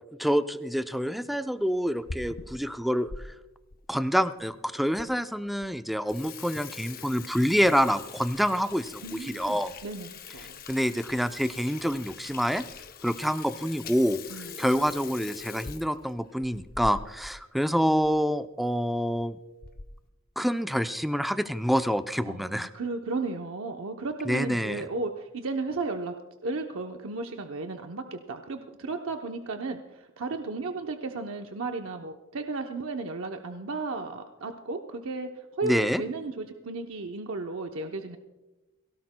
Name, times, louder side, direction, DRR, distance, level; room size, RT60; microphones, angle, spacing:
voice 1, 0.2-3.1 3.9-9.7 10.7-12.6 13.0-14.2 14.6-19.4 20.4-22.7 24.3-24.8 35.6-36.0, equal, ahead, 9 dB, 0.5 m, -27 dB
Water tap faucet / Sink (filling or washing), 1.8-3.2 3.7-3.8 4.5-4.6 5.0-5.1 5.5-5.7 5.9-17.4 17.7-17.8 18.0-18.2 18.9-19.2 19.6-20.0, left 5 dB, 45° left, 0.7 m, -43 dB
voice 2, 9.0-10.6 14.3-14.5 22.3-26.1 26.4-38.2, right 3 dB, 70° right, 4 dB, 0.8 m, -34 dB
22.5 x 17.0 x 2.2 m, 1.1 s
head